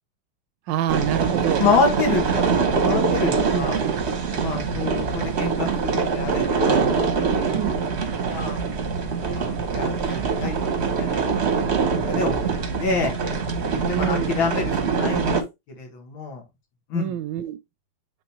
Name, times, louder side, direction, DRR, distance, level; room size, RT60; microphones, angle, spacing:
voice 1, 0.7-1.6 3.5-4.0 4.3-4.7 7.5-7.8 13.8-14.3 16.9-17.6, right 11 dB, 75° right, 1.2 m, -27 dB
sound 1, 0.9-15.4, right 5 dB, 45° right, 1.0 m, -24 dB
voice 2, 1.6-3.8 4.4-7.6 8.3-8.6 9.2-11.6 12.1-12.5 12.8-13.1 13.7-15.4 15.8-16.4 16.9-17.1, left 4 dB, 80° left, 2.4 m, -27 dB
8.7 x 3.7 x 3.0 m
omnidirectional pair, 2.2 m